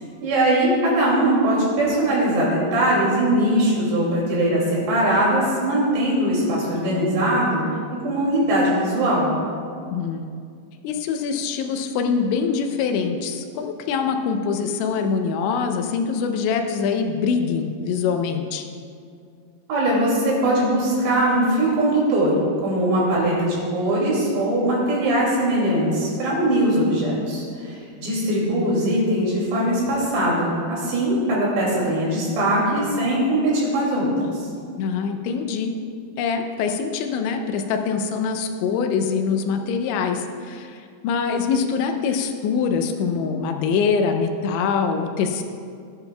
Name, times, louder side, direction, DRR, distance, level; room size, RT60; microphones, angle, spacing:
voice 1, 0.2-7.6 8.0-9.3 19.7-22.4 22.6-34.1, right 1 dB, 65° right, -5 dB, 4.4 m, -21 dB
voice 2, 9.9-10.3 10.8-18.6 34.8-35.7 36.2-45.4, left 5 dB, 80° left, 5 dB, 2.8 m, -24 dB
18.0 x 9.0 x 2.3 m, 2.3 s
omnidirectional pair, 5.6 m